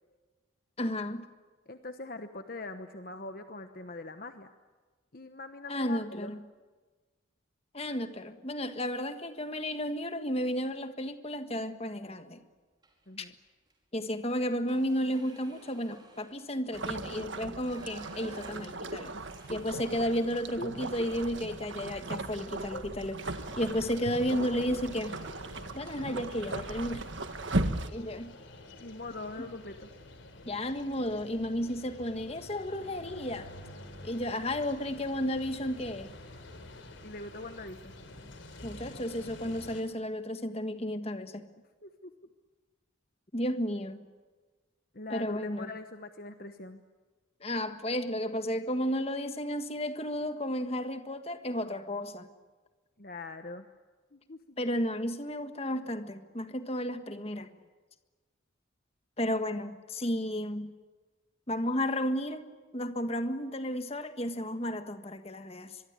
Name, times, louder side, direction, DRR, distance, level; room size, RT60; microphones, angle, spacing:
voice 1, 0.8-1.3 5.7-6.4 7.7-12.4 13.2-13.3 13.9-19.1 19.5-25.2 25.7-27.1 27.9-28.3 29.4-29.5 30.4-33.5 34.0-36.1 38.6-41.4 43.3-44.0 45.1-45.7 47.4-52.3 54.6-57.5 59.2-60.7 61.5-62.4 62.7-65.8, equal, 30° left, 8 dB, 1.5 m, -33 dB
voice 2, 1.7-4.5 5.1-6.3 13.1-13.3 19.1-19.6 20.6-20.7 22.5-22.8 28.8-29.9 37.0-37.9 41.8-42.1 44.9-46.8 53.0-53.7 54.1-54.6, left 2 dB, 45° left, 8 dB, 1.1 m, -42 dB
sound 1, 12.8-13.2 13.6-13.7 14.1-20.2 20.5-20.6 21.0-23.1 24.5-24.7 25.1-25.3 25.5-26.2, right 2 dB, 20° right, 4.9 m, -57 dB
sound 2, 16.7-27.9, right 2 dB, 70° right, 1.6 m, -37 dB
sound 3, 23.2-39.8, left 2 dB, 70° left, 3.8 m, -49 dB
24.5 x 23.0 x 9.7 m, 1.4 s
head